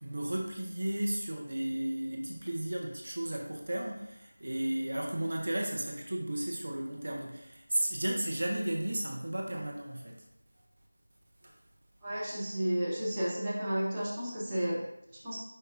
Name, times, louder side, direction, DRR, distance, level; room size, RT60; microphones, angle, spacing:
voice 1, 0.0-10.2 11.4-11.6, right 1 dB, 45° right, 0 dB, 0.6 m, -34 dB
voice 2, 12.0-15.4, equal, 10° right, -10 dB, 0.7 m, -33 dB
5.2 x 3.9 x 2.5 m, 0.85 s
figure-of-eight pair, 170°, 0 cm